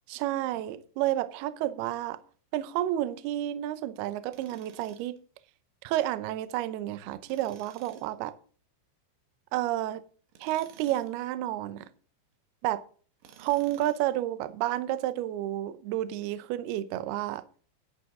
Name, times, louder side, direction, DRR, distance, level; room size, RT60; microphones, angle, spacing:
voice 1, 0.1-2.2 2.5-5.2 5.8-8.3 9.5-10.0 10.4-11.9 12.6-12.8 13.4-17.4, right 14 dB, 85° right, 2.2 m, -30 dB
Tools, 4.3-5.2 7.3-8.1 10.3-11.2 13.2-14.1, right 8 dB, 65° right, 3.5 m, -54 dB
11.0 x 10.0 x 3.7 m
omnidirectional pair, 5.7 m